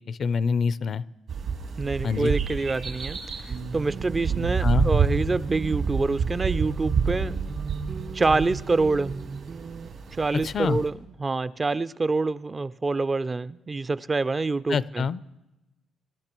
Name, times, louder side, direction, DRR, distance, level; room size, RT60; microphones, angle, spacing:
voice 1, 0.1-1.0 2.0-2.3 4.6-4.9 10.4-10.8 14.7-15.2, left 5 dB, 55° left, 17 dB, 0.4 m, -25 dB
sound 1, 1.3-10.9, right 5 dB, 70° right, 2.4 m, -29 dB
voice 2, 1.8-7.4 8.1-9.1 10.2-15.0, right 3 dB, 30° right, 15 dB, 0.4 m, -26 dB
sound 2, 3.5-9.9, right 5 dB, 55° right, 1.3 m, -37 dB
24.5 x 13.0 x 3.0 m, 0.97 s
cardioid pair, 90°, 0 cm